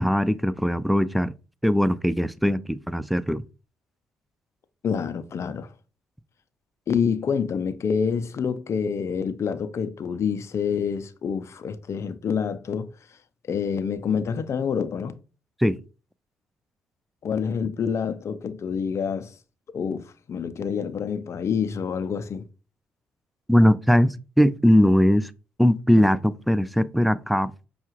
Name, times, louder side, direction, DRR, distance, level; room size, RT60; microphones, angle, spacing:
voice 1, 0.0-1.3 1.6-3.4 15.6-15.8 23.5-25.3 25.6-27.5, equal, ahead, 0.3 m, -20 dB
voice 2, 4.8-5.7 6.9-12.9 13.5-15.2 17.2-19.3 19.7-22.4, left 6 dB, 50° left, 0.5 m, -27 dB
5.5 x 2.4 x 3.0 m
hypercardioid pair, 50°, 6 cm